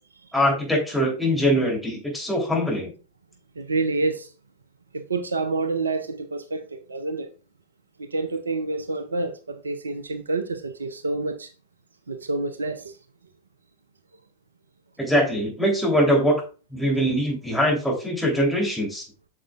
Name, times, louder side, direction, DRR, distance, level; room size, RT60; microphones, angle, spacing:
voice 1, 0.3-2.9 15.0-16.4 16.7-19.0, equal, ahead, 3.3 m, -22 dB
voice 2, 3.6-4.3 4.9-7.3 8.0-11.5 12.1-13.0, right 3 dB, 75° right, 0.6 m, -28 dB
8.7 x 6.5 x 2.4 m
figure-of-eight pair, 90°, 0 cm